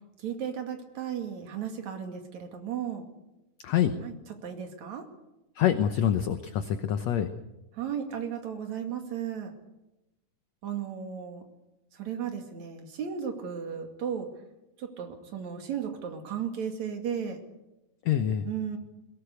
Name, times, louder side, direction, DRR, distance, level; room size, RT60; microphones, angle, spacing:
voice 1, 0.2-3.1 4.0-4.2 4.4-5.1 7.7-9.5 10.6-11.4 11.9-14.3 14.8-17.4 18.4-18.8, right 8 dB, 60° right, 5 dB, 3.5 m, -35 dB
voice 2, 5.6-7.3 18.1-18.5, left 10 dB, 65° left, 9 dB, 1.9 m, -26 dB
21.5 x 18.0 x 8.2 m, 0.94 s
omnidirectional pair, 3.8 m